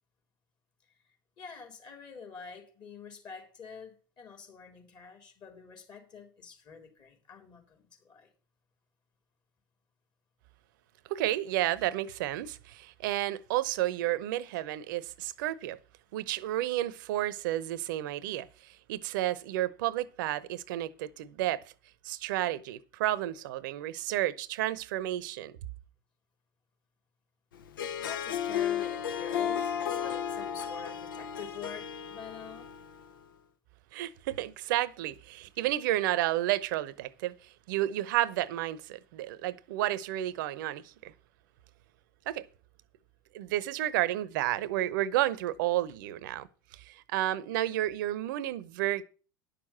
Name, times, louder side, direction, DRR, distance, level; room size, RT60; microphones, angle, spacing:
voice 1, 1.4-8.3 28.0-32.7, left 6 dB, 40° left, 4.0 m, -47 dB
voice 2, 11.1-15.8 16.1-21.6 22.0-25.5 33.9-37.3 37.7-41.1 42.3-42.4 43.3-49.0, right 14 dB, 65° right, 0.8 m, -31 dB
Harp, 27.6-33.1, left 9 dB, 75° left, 0.8 m, -34 dB
10.5 x 6.8 x 7.3 m
hypercardioid pair, 80°, 11 cm